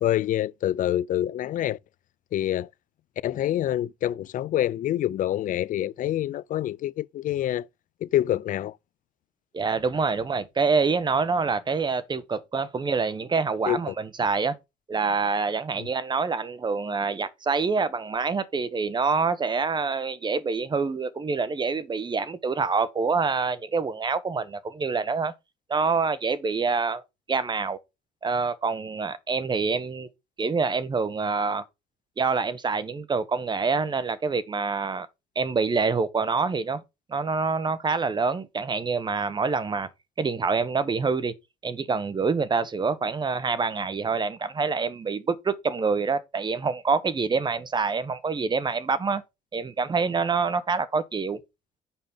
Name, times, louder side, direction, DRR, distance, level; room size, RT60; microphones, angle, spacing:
voice 1, 0.0-1.8 2.3-2.7 3.2-7.7 8.0-8.8 13.7-13.8 15.8-15.9, left 12 dB, 50° left, 0.4 m, -26 dB
voice 2, 9.5-14.6 14.9-25.3 25.7-27.0 27.3-27.8 28.2-30.1 30.4-31.6 32.2-35.1 35.3-36.8 37.1-39.9 40.2-41.3 41.6-49.2 49.5-51.4, right 4 dB, 25° right, 1.1 m, -26 dB
7.1 x 5.2 x 5.5 m
cardioid pair, 110°, 17 cm